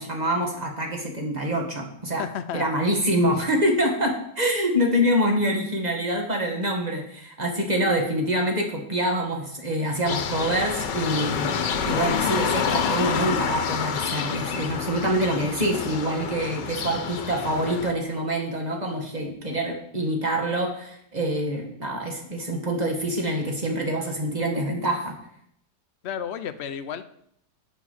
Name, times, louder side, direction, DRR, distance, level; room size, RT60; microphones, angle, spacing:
voice 1, 0.0-2.3 2.5-11.5 11.9-25.2, equal, 25° right, 2 dB, 1.9 m, -26 dB
voice 2, 2.2-2.6 26.0-27.0, left 8 dB, 55° left, 10 dB, 0.7 m, -32 dB
sound 1, 10.1-17.9, left 7 dB, 80° left, 1.6 m, -28 dB
8.8 x 7.2 x 7.3 m, 0.71 s
omnidirectional pair, 1.9 m